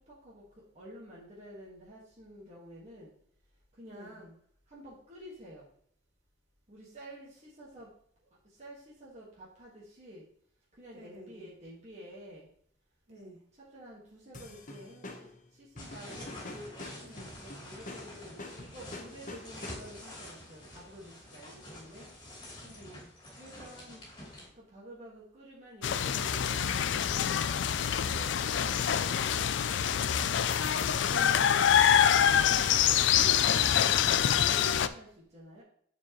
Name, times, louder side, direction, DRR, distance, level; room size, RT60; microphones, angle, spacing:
voice 1, 0.1-0.4 0.7-3.1 3.8-4.3 4.7-5.6 6.7-7.9 8.6-10.3 10.8-12.5 13.7-15.3 15.6-16.8 17.3-22.1 23.4-24.0 24.5-27.4 27.9-29.6 30.1-30.5 30.7-32.9 33.4-35.6, equal, 35° right, -6 dB, 1.6 m, -49 dB
voice 2, 3.9-4.2 10.9-11.5 13.1-13.4 17.0-17.4 22.6-23.1, right 1 dB, 65° right, -2 dB, 2.5 m, -51 dB
sound 1, 14.3-20.1, left 2 dB, 45° left, 1.0 m, -46 dB
sound 2, 15.8-24.5, left 1 dB, 25° left, 2.9 m, -48 dB
sound 3, 25.8-34.9, left 9 dB, 70° left, 0.4 m, -25 dB
9.5 x 4.6 x 3.0 m, 0.64 s
head